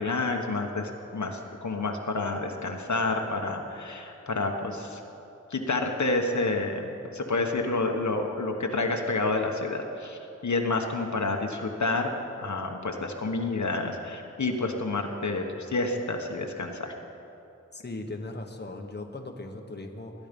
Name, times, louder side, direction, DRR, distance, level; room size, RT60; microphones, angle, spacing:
voice 1, 0.0-5.0 5.5-12.1 12.4-16.9, left 3 dB, 70° left, 3 dB, 1.3 m, -29 dB
voice 2, 17.7-20.1, left 2 dB, 35° left, 3 dB, 1.2 m, -38 dB
21.0 x 10.5 x 5.3 m, 2.9 s
wide cardioid pair, 80°, 30 cm